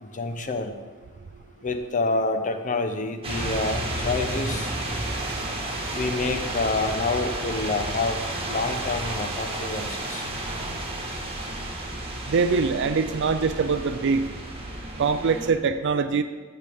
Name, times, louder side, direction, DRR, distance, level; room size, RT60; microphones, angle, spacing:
voice 1, 0.0-0.7 1.6-4.7 5.9-8.2 8.4-10.2 14.1-14.2, left 3 dB, 40° left, 7 dB, 0.8 m, -28 dB
sound 1, 3.2-15.5, right 1 dB, 25° right, 1.5 m, -31 dB
voice 2, 12.3-14.2 15.0-16.2, right 5 dB, 60° right, 9 dB, 0.4 m, -23 dB
14.5 x 6.9 x 3.5 m, 1.4 s
head